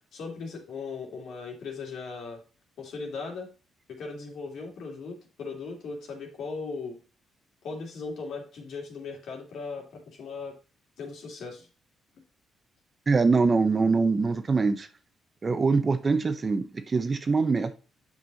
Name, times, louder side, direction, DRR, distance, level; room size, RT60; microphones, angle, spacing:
voice 1, 0.1-2.4 2.8-3.5 3.9-7.0 7.6-10.5 11.0-11.7, left 4 dB, 70° left, 2.7 m, -38 dB
voice 2, 13.1-14.9 15.4-17.7, right 4 dB, 30° right, 0.8 m, -23 dB
7.9 x 5.4 x 4.0 m
cardioid pair, 90°, 0 cm